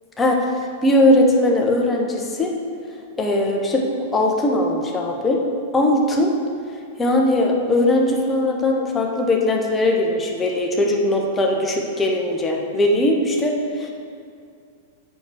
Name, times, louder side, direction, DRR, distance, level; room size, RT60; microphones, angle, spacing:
voice 1, 0.8-2.5 3.2-3.8 4.1-5.4 5.7-6.3 7.0-13.9, left 1 dB, 15° left, 0 dB, 1.3 m, -19 dB
7.0 x 6.3 x 6.1 m, 2.3 s
figure-of-eight pair, 95°, 0 cm